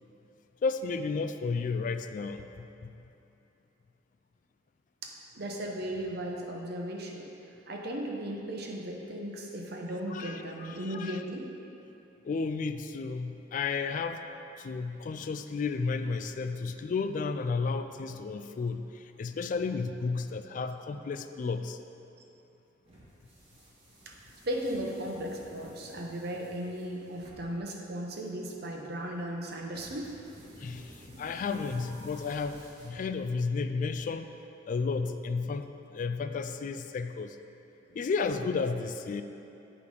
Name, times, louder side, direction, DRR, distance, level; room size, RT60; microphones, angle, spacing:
voice 1, 0.6-2.9 10.1-11.2 12.2-14.2 14.6-21.8 30.6-34.3 34.7-37.4 37.9-39.2, left 4 dB, 45° left, 8 dB, 0.3 m, -33 dB
voice 2, 5.0-7.2 7.7-11.5 24.1-24.2 24.5-30.1, right 1 dB, 60° right, 0 dB, 1.0 m, -36 dB
sound 1, 22.8-33.4, equal, 35° right, 1.9 m, -53 dB
8.4 x 4.9 x 5.4 m, 2.9 s
head